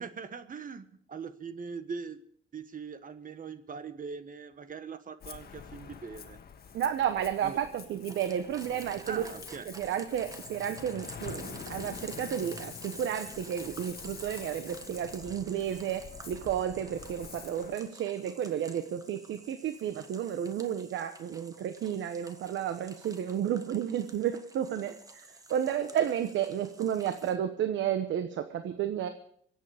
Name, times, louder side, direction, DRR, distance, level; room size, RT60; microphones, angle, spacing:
voice 1, 0.0-2.2 2.5-6.4 7.4-7.6 9.0-9.7, right 5 dB, 45° right, 11 dB, 1.4 m, -41 dB
Ocean, 5.2-17.7, left 6 dB, 50° left, 1.5 m, -46 dB
voice 2, 6.7-9.2 9.6-29.1, right 9 dB, 75° right, 9 dB, 1.1 m, -32 dB
sound 1, 8.1-27.4, right 2 dB, 15° right, 1.4 m, -50 dB
24.0 x 8.6 x 5.0 m, 0.65 s
cardioid pair, 90°, 20 cm